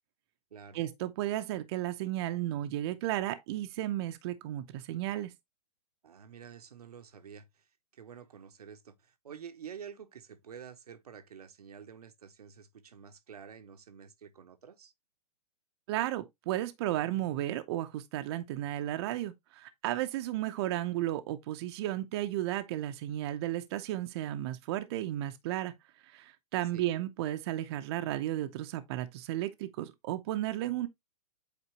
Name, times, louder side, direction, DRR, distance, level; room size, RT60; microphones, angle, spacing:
voice 1, 0.7-5.3 15.9-25.7 26.0-30.9, right 14 dB, 40° right, 0.8 m, -34 dB
voice 2, 6.0-7.6 7.9-14.9 26.7-26.8, right 7 dB, 75° right, 1.0 m, -49 dB
8.3 x 4.4 x 2.9 m
hypercardioid pair, 125°, 20 cm